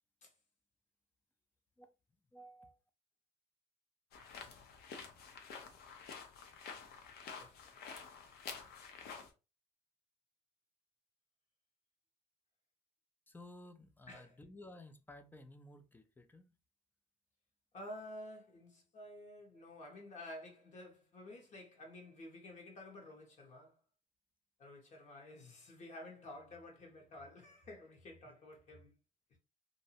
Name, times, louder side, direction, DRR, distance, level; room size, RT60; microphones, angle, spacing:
voice 1, 2.3-2.8 13.3-16.5, left 1 dB, 10° left, 0.4 m, -55 dB
sound 1, 4.1-9.3, left 5 dB, 70° left, 0.6 m, -50 dB
voice 2, 7.3-7.7 14.1-14.3 17.7-23.8 24.6-28.9, left 1 dB, 45° left, 1.1 m, -51 dB
2.6 x 2.0 x 2.8 m
cardioid pair, 110°, 17 cm